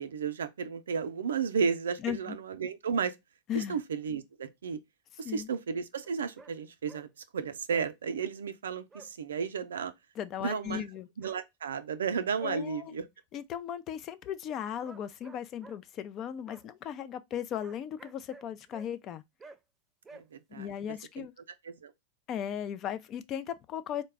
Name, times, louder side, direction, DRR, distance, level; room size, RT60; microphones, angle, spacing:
voice 1, 0.0-3.1 3.5-4.8 5.2-7.1 7.3-9.9 10.4-10.8 11.2-13.0 20.1-20.7 21.2-21.3 21.6-21.9, right 6 dB, 85° right, 0.5 m, -33 dB
voice 2, 2.0-2.4 3.5-3.8 5.2-5.5 10.2-11.1 12.4-12.9 13.3-19.2 20.5-21.3 22.3-24.0, left 9 dB, 40° left, 0.4 m, -37 dB
sound 1, 6.0-6.5 6.8-7.1 7.7-7.9 8.9-9.1 9.7-9.9 11.2-11.4 12.1-12.6 14.8-15.8 16.5-16.7 17.6-18.9 19.4-19.6 20.0-20.2, right 3 dB, 20° right, 0.5 m, -52 dB
4.0 x 2.2 x 3.3 m
hypercardioid pair, 105°, 0 cm